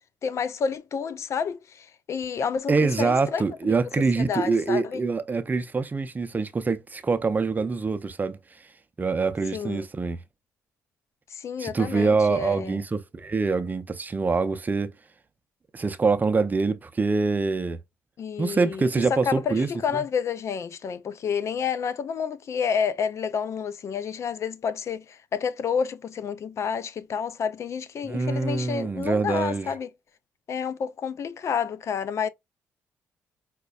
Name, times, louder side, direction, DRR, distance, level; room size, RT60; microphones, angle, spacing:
voice 1, 0.2-3.7 4.2-5.0 9.5-9.8 11.3-12.8 18.2-29.9 30.5-32.3, left 6 dB, 55° left, 0.4 m, -30 dB
voice 2, 2.7-8.4 9.0-10.2 11.6-14.9 15.7-17.8 18.4-20.0 28.0-29.7, right 4 dB, 30° right, 0.5 m, -25 dB
4.9 x 2.1 x 2.3 m
supercardioid pair, 60°, 6 cm